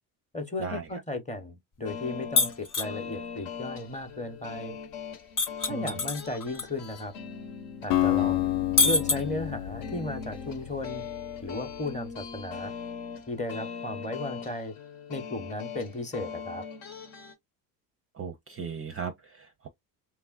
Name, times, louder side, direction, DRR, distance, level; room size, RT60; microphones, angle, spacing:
voice 1, 0.3-4.8 5.7-7.1 7.8-8.4 8.8-11.0 11.4-12.7 13.3-14.7 15.1-16.6, left 2 dB, 15° left, 0.7 m, -35 dB
sound 1, 1.8-17.3, left 6 dB, 75° left, 1.0 m, -41 dB
sound 2, 2.4-2.9 5.4-6.6 7.0-7.1 8.8-9.7, left 3 dB, 40° left, 0.9 m, -25 dB
Acoustic guitar, 7.9-12.0, left 14 dB, 60° left, 0.5 m, -30 dB
voice 2, 18.2-19.7, right 6 dB, 30° right, 0.4 m, -37 dB
3.1 x 2.4 x 2.4 m
supercardioid pair, 80°, 50 cm